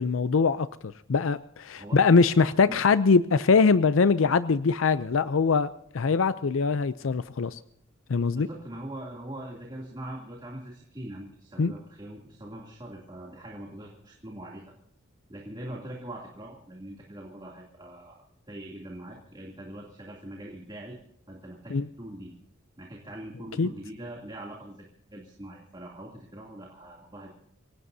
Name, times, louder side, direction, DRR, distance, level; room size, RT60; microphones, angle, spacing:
voice 1, 0.0-5.7 5.9-7.6 8.1-8.5 11.6-11.7 21.7-21.9 23.6-23.7, left 4 dB, 90° left, 14 dB, 0.5 m, -22 dB
voice 2, 8.3-14.6 15.3-18.2 18.5-21.0 21.3-22.3 22.8-27.3, right 1 dB, 25° right, -2 dB, 2.8 m, -42 dB
26.5 x 17.5 x 2.7 m, 0.72 s
head